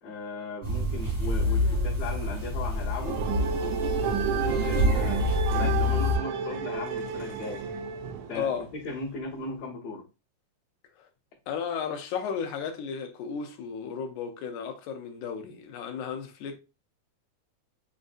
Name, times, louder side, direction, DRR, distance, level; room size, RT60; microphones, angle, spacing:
voice 1, 0.0-3.2 4.3-7.6 8.3-10.0, left 3 dB, 60° left, 2.2 m, -37 dB
sound 1, 0.6-6.2, left 2 dB, 25° right, 0.8 m, -27 dB
sound 2, 3.0-8.6, right 7 dB, 80° right, 1.6 m, -31 dB
voice 2, 8.3-8.7 11.0-11.1 11.5-16.6, left 7 dB, 80° left, 2.1 m, -34 dB
6.3 x 2.5 x 2.5 m
omnidirectional pair, 3.5 m